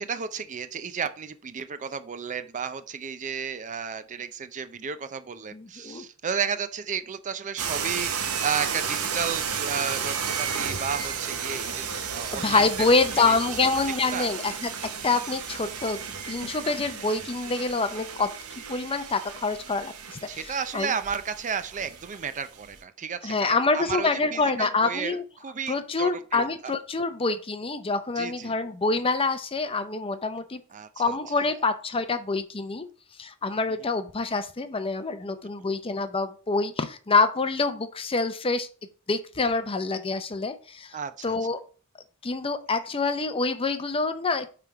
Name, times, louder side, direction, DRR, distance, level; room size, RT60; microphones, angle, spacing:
voice 1, 0.0-12.6 13.1-13.7 14.1-14.3 20.3-26.7 28.2-28.6 30.7-31.5 33.8-33.9 40.9-41.3, right 6 dB, 35° right, 0.5 m, -33 dB
voice 2, 5.5-6.0 12.3-16.0 16.3-20.3 20.7-20.9 23.2-25.2 25.7-30.6 31.0-32.9 33.2-38.7 39.1-41.0 41.2-41.6 42.2-44.5, left 3 dB, 25° left, 0.6 m, -26 dB
sound 1, 7.6-22.8, right 7 dB, 85° right, 1.0 m, -33 dB
9.1 x 3.4 x 4.6 m
head